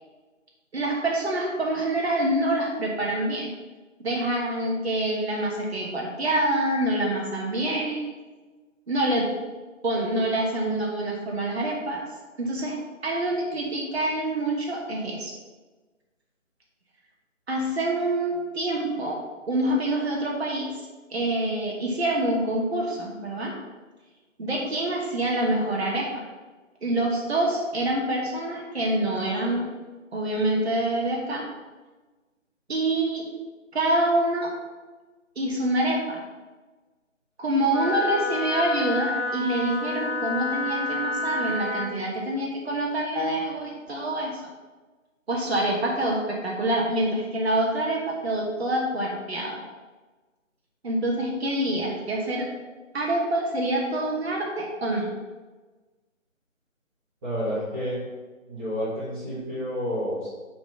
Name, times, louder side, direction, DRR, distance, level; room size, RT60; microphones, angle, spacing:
voice 1, 0.7-3.5 4.0-8.1 8.9-9.3 9.8-12.0 12.4-12.8 13.0-15.3 17.5-19.2 19.5-20.7 21.1-23.5 24.4-26.2 26.8-29.7 30.1-31.4 32.7-33.2 33.7-34.5 35.3-36.2 37.4-44.3 45.3-49.6 50.8-52.5 52.9-55.1, right 1 dB, 55° right, -1 dB, 1.4 m, -26 dB
Wind instrument woodwind instrument, 37.7-41.9, left 3 dB, 65° left, 2.3 m, -29 dB
voice 2, 57.2-58.0 58.5-60.3, equal, 15° right, -15 dB, 1.9 m, -30 dB
5.9 x 3.9 x 5.7 m, 1.3 s
figure-of-eight pair, 160°, 39 cm